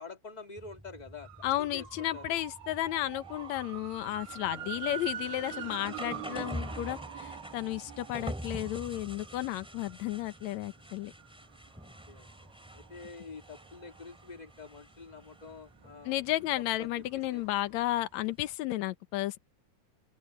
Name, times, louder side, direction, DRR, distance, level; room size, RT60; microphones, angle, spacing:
voice 1, 0.0-2.4 11.7-16.2 16.8-17.0 17.3-17.4, left 4 dB, 25° left, 0.9 m, -47 dB
sound 1, 0.6-18.5, equal, ahead, 2.9 m, -47 dB
sound 2, 1.2-14.9 15.3-17.9 18.2-18.3, right 10 dB, 60° right, 1.5 m, -46 dB
voice 2, 1.4-11.1 16.1-19.4, left 15 dB, 70° left, 2.2 m, -33 dB
open air
omnidirectional pair, 3.6 m